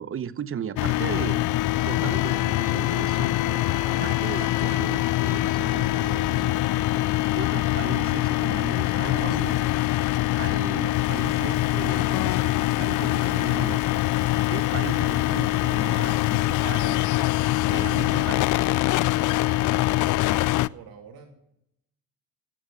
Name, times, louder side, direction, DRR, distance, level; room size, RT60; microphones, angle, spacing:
voice 1, 0.0-1.4 1.8-3.3 3.9-6.6 7.3-9.6 10.4-14.0 14.5-17.0 17.7-18.6, right 8 dB, 30° right, 16 dB, 0.9 m, -36 dB
sound 1, 0.8-20.7, left 17 dB, 45° left, 0.5 m, -24 dB
sound 2, 3.4-8.0 8.3-8.4 8.6-8.7, right 17 dB, 75° right, 0.9 m, -46 dB
Water tap faucet / Sink (filling or washing) / Splash splatter, 10.8-19.4, left 7 dB, 85° left, 5.1 m, -51 dB
voice 2, 20.3-21.4, right 6 dB, 55° right, 2 dB, 3.0 m, -48 dB
18.5 x 10.0 x 6.9 m, 0.79 s
hypercardioid pair, 70°, 43 cm